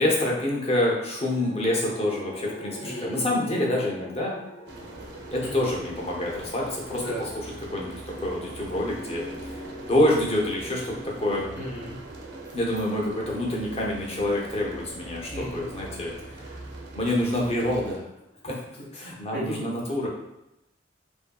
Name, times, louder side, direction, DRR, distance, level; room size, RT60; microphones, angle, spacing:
voice 1, 0.0-4.3 5.3-11.5 12.5-16.5 16.9-18.1 18.4-18.6 18.9-20.1, left 1 dB, 35° left, -3 dB, 0.6 m, -27 dB
sound 1, 1.0-17.3, equal, 90° left, 1.1 m, -44 dB
voice 2, 2.8-3.2 5.4-5.7 7.0-7.2 11.6-12.0 15.3-15.6 19.3-19.6, equal, 65° left, -7 dB, 0.9 m, -35 dB
sound 2, 4.7-18.0, right 2 dB, 65° right, 0.5 m, -42 dB
2.6 x 2.5 x 2.2 m, 0.88 s
head